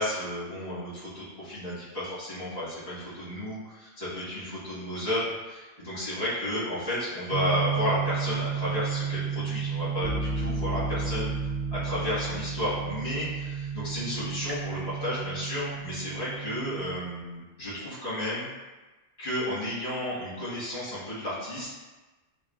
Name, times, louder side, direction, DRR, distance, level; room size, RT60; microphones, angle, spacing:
voice 1, 0.0-11.3 11.8-18.5 19.2-21.7, left 1 dB, 75° left, -11 dB, 1.7 m, -32 dB
sound 1, 7.3-17.0, right 5 dB, 80° right, 0.8 m, -32 dB
3.5 x 2.1 x 2.4 m, 1.2 s
omnidirectional pair, 1.0 m